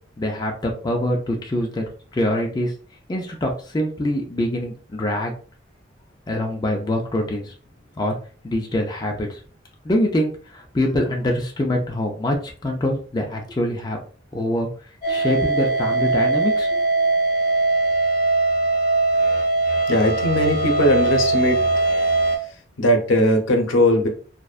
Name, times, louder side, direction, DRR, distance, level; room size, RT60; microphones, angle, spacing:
voice 1, 0.2-1.8 2.1-2.7 3.1-5.3 6.3-7.5 8.0-8.1 8.4-9.4 9.8-14.0 14.3-14.7 15.1-16.8, left 1 dB, 20° left, 1 dB, 0.4 m, -24 dB
sound 1, 15.0-22.4, right 3 dB, 40° left, 0.9 m, -20 dB
voice 2, 19.9-21.6 22.8-24.1, left 1 dB, 80° left, 4 dB, 0.6 m, -19 dB
2.5 x 2.1 x 2.3 m, 0.40 s
head